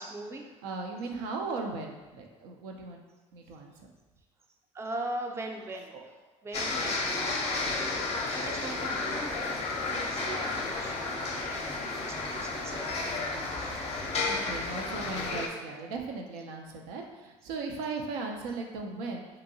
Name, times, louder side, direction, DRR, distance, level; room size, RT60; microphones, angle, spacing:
voice 1, 0.0-0.4 4.7-6.1 6.4-11.1 11.3-14.2 14.6-14.8, right 2 dB, 15° right, 3 dB, 0.4 m, -41 dB
voice 2, 0.6-3.0 3.3-3.7 14.2-19.3, right 3 dB, 80° right, 1 dB, 0.4 m, -37 dB
sound 1, 6.5-15.5, left 3 dB, 40° left, 0.5 m, -32 dB
2.7 x 2.6 x 2.6 m, 1.2 s
hypercardioid pair, 70°, 16 cm